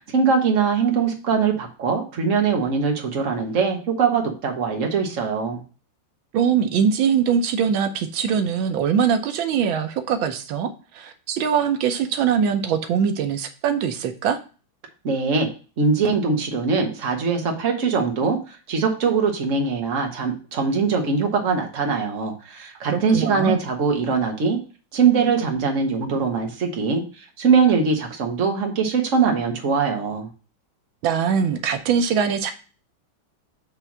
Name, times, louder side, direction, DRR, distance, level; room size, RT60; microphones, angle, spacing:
voice 1, 0.1-5.6 15.0-15.5 15.8-24.6 24.9-30.3, right 5 dB, 45° right, 3 dB, 1.6 m, -22 dB
voice 2, 6.3-14.4 22.8-23.6 31.0-32.5, right 7 dB, 90° right, 7 dB, 1.6 m, -22 dB
7.3 x 3.3 x 5.9 m, 0.36 s
omnidirectional pair, 2.1 m